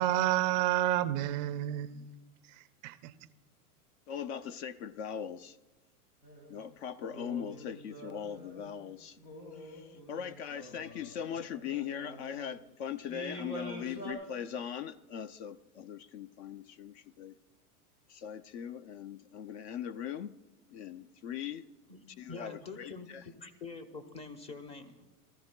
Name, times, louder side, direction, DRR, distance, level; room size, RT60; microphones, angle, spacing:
voice 1, 0.0-2.0 2.8-3.1, right 14 dB, 30° right, 12 dB, 0.4 m, -29 dB
voice 2, 4.1-5.6 6.5-9.2 9.5-17.4 18.1-20.4 20.7-21.6 22.2-23.2, left 8 dB, 45° left, 16 dB, 0.5 m, -40 dB
sound 1, 6.2-6.5 7.1-8.8 9.2-12.5 13.1-14.1, right 1 dB, 85° left, 5.0 m, -46 dB
voice 3, 21.9-25.1, left 4 dB, 15° left, 8 dB, 0.7 m, -46 dB
22.5 x 14.5 x 2.2 m, 1.2 s
supercardioid pair, 135°, 46 cm